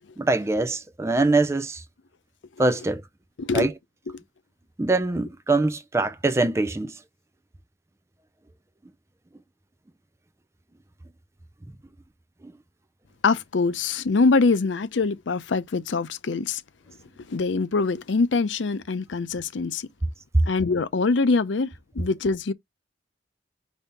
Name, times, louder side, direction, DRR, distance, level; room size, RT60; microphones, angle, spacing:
voice 1, 0.2-1.8 2.6-3.0 3.5-3.7 4.8-7.0 12.4-12.5, right 2 dB, 15° right, 0.4 m, -23 dB
voice 2, 3.4-3.7 4.1-4.2 13.2-16.6 17.3-19.9 20.5-22.5, left 4 dB, 90° left, 0.6 m, -24 dB
5.4 x 2.7 x 3.4 m
head